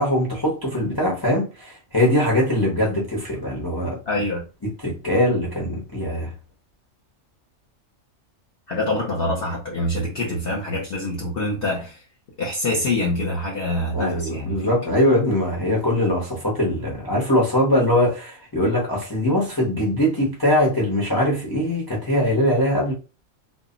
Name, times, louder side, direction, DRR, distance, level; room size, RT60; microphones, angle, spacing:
voice 1, 0.0-4.0 4.6-6.3 13.9-22.9, left 1 dB, 25° left, 0.5 m, -21 dB
voice 2, 4.1-4.4 8.7-12.0 12.4-14.7, left 1 dB, 55° left, 0.8 m, -25 dB
2.2 x 2.0 x 3.7 m
omnidirectional pair, 1.3 m